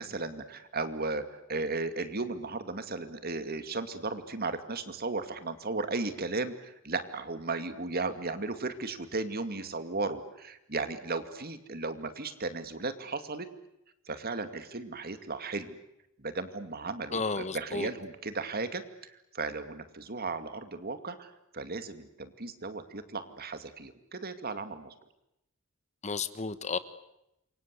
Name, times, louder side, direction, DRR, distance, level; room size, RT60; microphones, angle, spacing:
voice 1, 0.0-13.5 14.1-15.8 16.2-24.9, right 3 dB, 50° right, 10 dB, 2.3 m, -35 dB
voice 2, 17.1-17.9 26.0-26.8, left 4 dB, 35° left, 13 dB, 1.3 m, -32 dB
28.5 x 24.0 x 8.3 m, 0.85 s
head